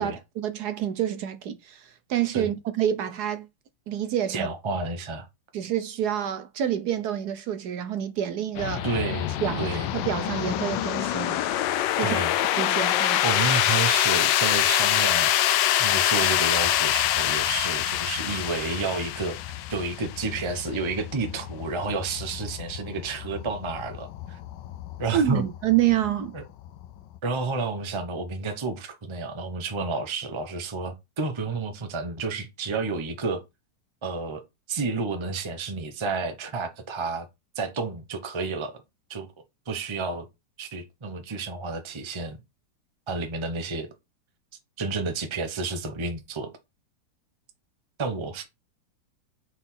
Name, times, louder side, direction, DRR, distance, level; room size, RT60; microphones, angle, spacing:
voice 1, 0.0-3.5 3.9-4.5 5.5-8.9 9.4-11.4 11.9-13.2 25.1-26.3, right 10 dB, 65° right, 1.1 m, -28 dB
voice 2, 4.3-5.3 8.8-9.9 12.0-12.3 13.2-24.4 25.0-25.4 26.3-26.4 27.2-33.4 34.0-34.4 34.7-37.3 37.6-38.8 39.1-39.3 39.7-40.3 40.6-42.4 43.1-43.9 44.8-46.5 48.0-48.5, right 4 dB, 25° right, 0.7 m, -30 dB
sound 1, 8.5-27.2, left 13 dB, 80° left, 1.3 m, -26 dB
4.9 x 4.2 x 5.6 m
omnidirectional pair, 2.0 m